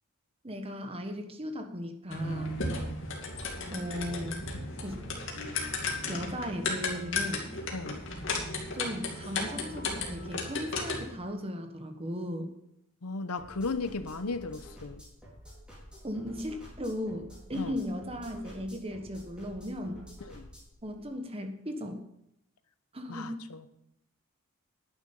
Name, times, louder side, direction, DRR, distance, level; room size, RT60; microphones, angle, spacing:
voice 1, 0.4-2.6 3.7-4.5 4.8-5.1 6.1-7.5 8.7-12.5 16.0-20.0 20.8-22.0 22.9-23.5, equal, 25° right, 1.3 m, -37 dB
sound 1, 2.1-11.2, left 3 dB, 60° left, 2.4 m, -35 dB
voice 2, 2.7-3.0 7.7-8.0 13.0-15.0 17.5-17.7 20.3-20.5 23.1-23.6, left 3 dB, 90° left, 0.9 m, -36 dB
sound 2, 13.4-20.8, equal, 5° right, 4.2 m, -50 dB
11.0 x 9.5 x 5.4 m
head